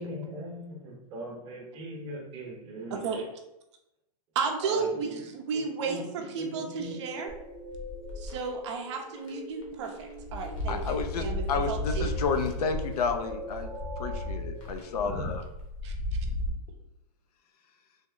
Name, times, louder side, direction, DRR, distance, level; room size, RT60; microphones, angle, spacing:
voice 1, 0.0-3.2 4.6-5.2 5.5-6.0 6.4-7.0, right 1 dB, 20° right, -3 dB, 0.9 m, -40 dB
voice 2, 2.9-3.2 4.3-7.3 8.2-12.1 15.8-15.9, right 5 dB, 45° right, 3 dB, 0.6 m, -33 dB
sound 1, 6.8-15.3, equal, 5° left, 0.5 m, -43 dB
sound 2, 7.3-8.5 9.2-9.3 9.6-16.5, left 1 dB, 50° left, 1.0 m, -35 dB
voice 3, 10.7-13.7 14.0-15.4, left 5 dB, 70° left, 7 dB, 0.5 m, -31 dB
3.5 x 2.0 x 3.8 m, 0.89 s
supercardioid pair, 165°, 21 cm